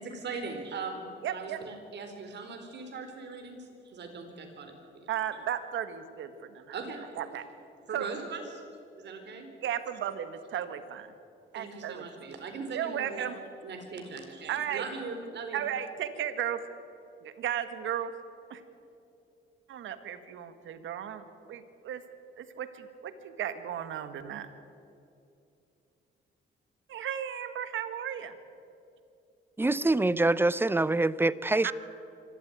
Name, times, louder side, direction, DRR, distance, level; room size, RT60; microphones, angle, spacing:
voice 1, 0.0-5.1 6.7-7.1 7.9-8.4 9.0-9.5 11.5-13.3 13.6-15.6, right 4 dB, 60° right, 5 dB, 4.3 m, -40 dB
voice 2, 1.2-1.6 5.1-6.8 7.2-7.4 7.9-8.1 9.6-11.1 11.5-12.2 12.7-13.4 14.5-14.8 15.5-16.6 17.2-18.1 18.5-18.6 19.7-22.0 22.4-24.5 26.9-28.3 31.6-31.7, right 10 dB, 75° right, 10 dB, 1.7 m, -35 dB
voice 3, 29.6-31.7, right 2 dB, 10° right, 18 dB, 0.7 m, -25 dB
25.0 x 13.5 x 9.3 m, 2.7 s
cardioid pair, 90°, 20 cm